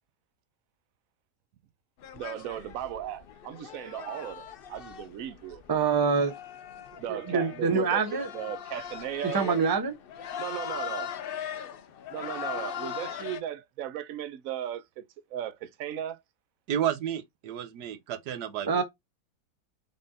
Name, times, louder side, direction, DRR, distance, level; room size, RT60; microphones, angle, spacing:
sound 1, 2.0-13.4, left 9 dB, 90° left, 0.5 m, -40 dB
voice 1, 2.1-5.6 7.0-8.0 8.3-9.6 10.4-11.1 12.1-15.0 15.3-16.2, right 11 dB, 65° right, 1.0 m, -36 dB
voice 2, 5.7-6.3 7.1-8.3 9.3-9.9 18.7-18.8, right 5 dB, 35° right, 0.3 m, -25 dB
voice 3, 16.7-18.8, right 10 dB, 85° right, 1.3 m, -31 dB
5.3 x 3.7 x 2.6 m
omnidirectional pair, 1.7 m